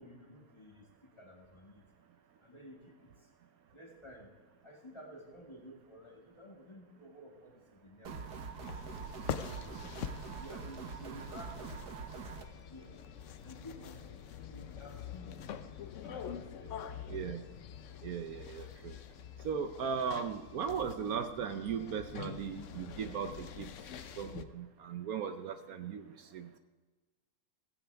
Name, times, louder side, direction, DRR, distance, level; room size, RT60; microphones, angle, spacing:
voice 1, 0.0-1.8 2.4-3.1 3.7-4.3 4.6-8.7 9.4-9.9 10.4-11.8 12.1-12.3 12.7-12.9 13.4-15.4 16.0-16.7 17.1-17.6, left 1 dB, 20° left, 0 dB, 2.0 m, -53 dB
sound 1, 8.0-12.4, right 5 dB, 90° right, 1.8 m, -44 dB
sound 2, 8.6-24.4, left 8 dB, 60° left, 0.9 m, -46 dB
voice 2, 17.1-17.4 18.0-18.9 19.4-23.7 24.2-26.0 26.3-26.5, right 7 dB, 70° right, 8 dB, 1.1 m, -37 dB
16.5 x 15.5 x 3.4 m, 1.3 s
omnidirectional pair, 1.7 m